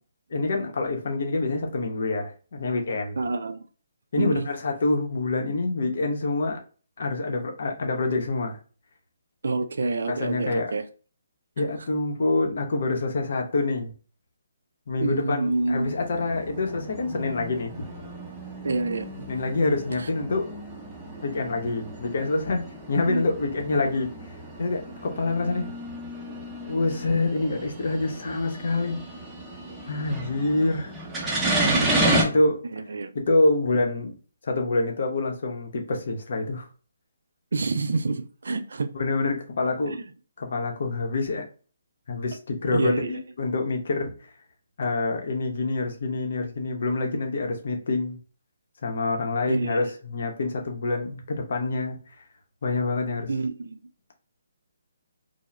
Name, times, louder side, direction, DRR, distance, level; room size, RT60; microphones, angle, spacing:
voice 1, 0.3-3.2 4.1-6.6 7.0-8.6 10.1-10.7 11.6-13.9 14.9-17.9 19.3-20.5 21.2-22.6 22.9-24.1 24.6-25.7 26.7-29.0 29.9-30.9 31.6-32.6 33.1-34.1 34.4-36.7 38.9-40.0 40.4-41.4 42.1-44.3 44.8-48.2 48.8-52.0 52.6-53.3, left 2 dB, 55° left, 0.7 m, -26 dB
voice 2, 3.2-3.6 4.2-4.5 9.4-10.8 15.0-15.9 18.6-19.3 20.0-20.1 23.1-23.3 32.7-33.1 37.5-38.9 39.8-40.0 42.7-43.2 49.5-49.9 53.3-53.8, right 3 dB, 65° right, 0.3 m, -27 dB
sound 1, 15.4-32.2, right 1 dB, 10° right, 0.7 m, -32 dB
2.3 x 2.0 x 3.0 m
figure-of-eight pair, 145°, 0 cm